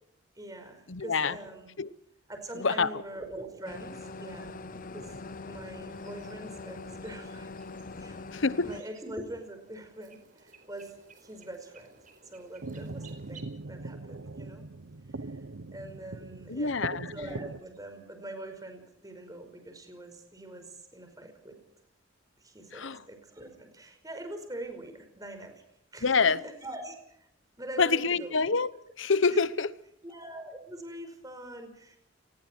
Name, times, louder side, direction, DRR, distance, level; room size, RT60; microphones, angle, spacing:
voice 1, 0.4-1.7 2.3-4.6 4.9-5.1 5.4-7.5 8.0-8.2 8.6-10.9 11.2-11.9 12.3-14.6 15.7-16.8 17.1-21.6 22.4-25.5 25.9-26.9 27.6-28.4 30.0-32.0, right 1 dB, 20° right, 5.1 m, -43 dB
voice 2, 0.9-1.4 1.8-1.9 2.5-2.9 8.3-8.7 16.5-17.1 22.7-23.0 26.0-26.4 27.8-28.7 29.0-29.7, left 4 dB, 70° left, 1.0 m, -26 dB
sound 1, 3.6-8.8, left 3 dB, 45° left, 0.8 m, -42 dB
sound 2, 5.9-13.4, right 5 dB, 40° right, 4.5 m, -57 dB
sound 3, 12.6-17.6, right 2 dB, 80° right, 0.8 m, -41 dB
30.0 x 20.0 x 4.5 m
head